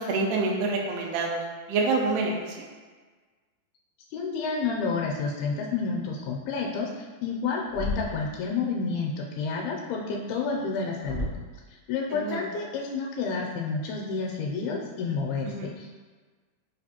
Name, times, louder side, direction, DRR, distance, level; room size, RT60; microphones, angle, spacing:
voice 1, 0.0-1.4 1.7-2.6 12.1-12.4 15.4-15.7, right 3 dB, 85° right, 1 dB, 2.5 m, -27 dB
voice 2, 4.1-11.3 11.9-16.0, left 4 dB, 80° left, -1 dB, 2.4 m, -30 dB
Thump thud, 7.7-8.3 11.0-11.6, left 2 dB, 60° left, 1.0 m, -32 dB
7.2 x 2.5 x 2.8 m, 1.4 s
omnidirectional pair, 4.5 m